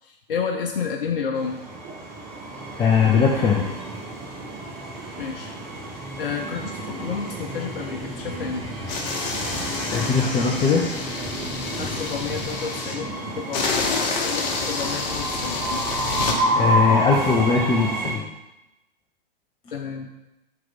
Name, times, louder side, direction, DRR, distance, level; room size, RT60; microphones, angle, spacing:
voice 1, 0.0-1.6 5.2-5.5 6.2-8.7 11.8-15.8 19.7-20.1, left 6 dB, 65° left, 2 dB, 0.7 m, -31 dB
Train, 1.3-18.1, right 1 dB, 30° right, 1.8 m, -30 dB
voice 2, 2.8-3.8 9.9-10.9 16.6-18.2, left 5 dB, 15° left, -3 dB, 0.7 m, -20 dB
sound 1, 8.9-12.9 13.5-16.4, left 4 dB, 45° left, 1.1 m, -28 dB
7.6 x 3.9 x 3.9 m, 0.95 s
figure-of-eight pair, 105°, 29 cm